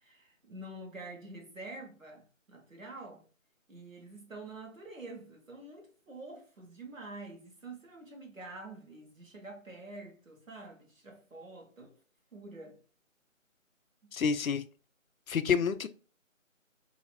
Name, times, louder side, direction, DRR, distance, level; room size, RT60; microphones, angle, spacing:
voice 1, 0.0-3.2 3.7-11.9 12.3-12.8, right 2 dB, 75° right, 1.6 m, -47 dB
voice 2, 14.1-14.6 15.3-15.9, left 6 dB, 90° left, 0.5 m, -28 dB
4.0 x 2.9 x 2.4 m
figure-of-eight pair, 175°, 40 cm